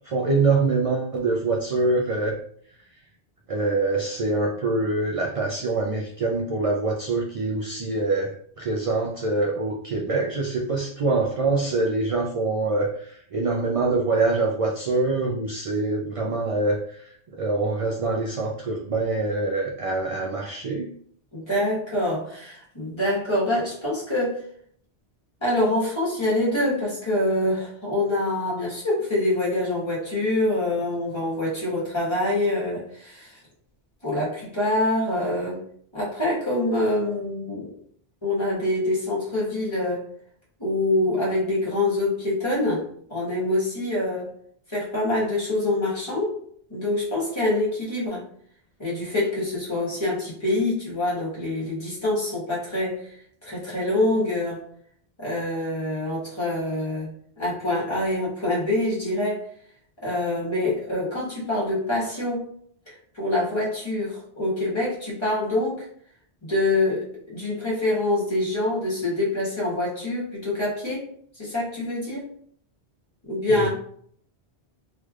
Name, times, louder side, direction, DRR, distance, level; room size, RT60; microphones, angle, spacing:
voice 1, 0.0-2.4 3.5-21.0 73.5-73.7, right 3 dB, 60° right, 0 dB, 0.3 m, -25 dB
voice 2, 21.3-24.4 25.4-33.4 34.0-35.6 35.9-37.7 38.2-40.0 40.6-42.8 43.1-44.3 44.7-46.4 46.7-48.2 48.8-53.0 53.4-54.6 55.2-57.1 57.4-59.5 60.0-62.5 62.9-65.9 66.4-71.1 71.4-72.3 73.2-73.7, left 1 dB, 25° left, -7 dB, 1.4 m, -25 dB
3.3 x 3.1 x 2.4 m, 0.62 s
omnidirectional pair, 1.1 m